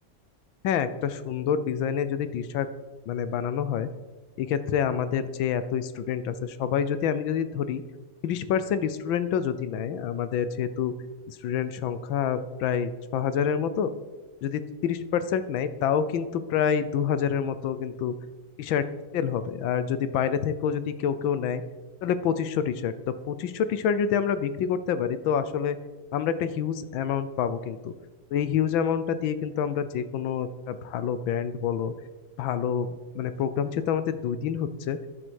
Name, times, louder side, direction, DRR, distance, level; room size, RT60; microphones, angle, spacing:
voice 1, 0.6-2.7 3.1-3.9 4.4-7.8 8.2-10.9 11.3-13.9 14.4-18.1 18.6-18.9 19.1-21.6 22.0-25.8 26.1-27.9 28.3-31.9 32.4-35.0, left 8 dB, 85° left, 12 dB, 1.5 m, -27 dB
11.0 x 7.9 x 6.4 m, 1.2 s
omnidirectional pair, 2.1 m